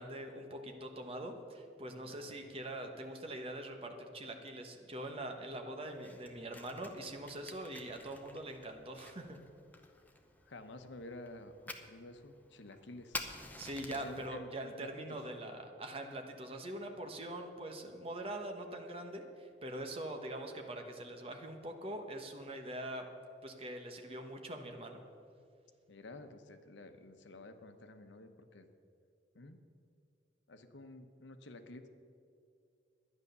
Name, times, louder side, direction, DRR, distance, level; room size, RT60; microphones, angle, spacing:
voice 1, 0.0-9.4 13.6-23.0 23.4-25.0, right 1 dB, 30° right, 4 dB, 1.1 m, -43 dB
Fire, 5.9-14.3, left 2 dB, 10° left, 0.8 m, -50 dB
voice 2, 10.4-13.3 13.9-15.2 25.9-28.7 29.3-29.6 30.5-31.9, left 2 dB, 90° left, 8 dB, 0.9 m, -51 dB
11.0 x 9.8 x 6.7 m, 2.5 s
head